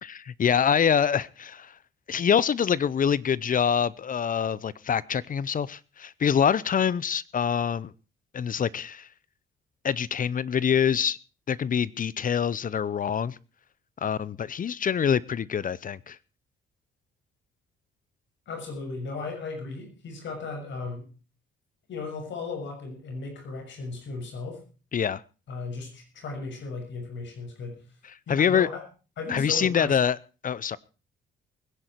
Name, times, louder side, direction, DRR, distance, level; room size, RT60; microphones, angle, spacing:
voice 1, 0.0-1.7 2.1-7.9 8.3-9.1 9.8-11.2 11.5-13.4 14.0-16.2 24.9-25.2 28.3-28.7 29.3-30.2 30.4-30.8, left 7 dB, 45° left, 21 dB, 0.7 m, -25 dB
voice 2, 18.5-21.1 21.9-24.6 25.5-27.8 28.3-28.8 29.2-30.0, left 3 dB, 70° left, 4 dB, 6.5 m, -36 dB
21.0 x 10.5 x 4.6 m, 0.34 s
cardioid pair, 90°, 20 cm